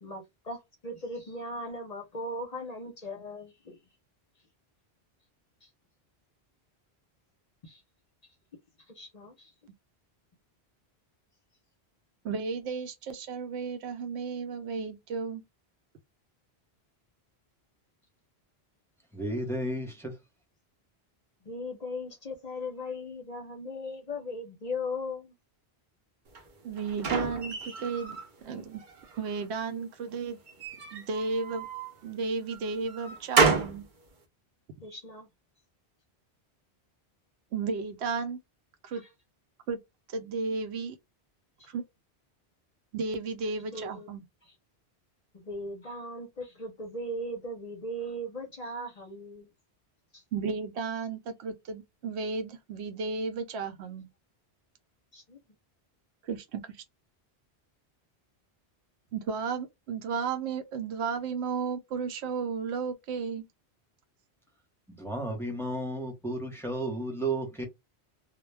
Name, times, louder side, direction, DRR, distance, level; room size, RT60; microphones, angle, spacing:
voice 1, 0.0-3.8 5.6-5.7 7.6-7.8 8.9-9.5 21.4-25.3 34.8-35.3 38.9-39.1 41.6-41.7 43.7-44.1 44.4-44.5 45.3-49.5 50.1-50.2 55.1-55.4, left 1 dB, 45° left, 0.6 m, -38 dB
voice 2, 12.2-15.4 26.6-28.8 29.2-30.4 30.9-31.7 32.0-33.9 37.5-38.4 38.8-39.0 39.7-39.8 40.1-41.0 41.7-41.8 42.9-44.2 50.3-54.1 56.2-56.6 59.1-63.4, right 5 dB, 85° right, 0.9 m, -33 dB
voice 3, 19.1-20.1 64.9-67.6, right 1 dB, 5° left, 0.6 m, -33 dB
sound 1, 26.3-28.3 28.7-29.5 30.5-31.9 32.5-33.8, right 4 dB, 55° right, 0.8 m, -30 dB
2.1 x 2.1 x 3.2 m
omnidirectional pair, 1.1 m